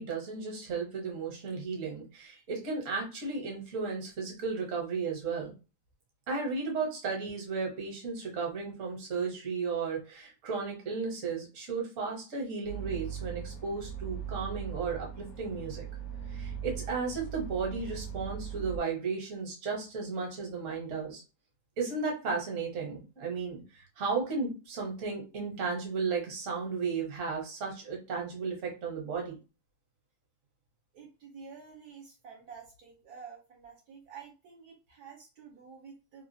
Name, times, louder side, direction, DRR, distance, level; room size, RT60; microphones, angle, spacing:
voice 1, 0.0-5.5 6.3-15.8 16.3-21.2 21.8-29.4, right 4 dB, 50° right, 0 dB, 1.2 m, -34 dB
sound 1, 12.6-18.8, right 8 dB, 65° left, 0.9 m, -39 dB
voice 2, 30.9-36.2, right 6 dB, 70° right, -2 dB, 1.2 m, -50 dB
3.1 x 2.3 x 2.6 m, 0.31 s
omnidirectional pair, 1.9 m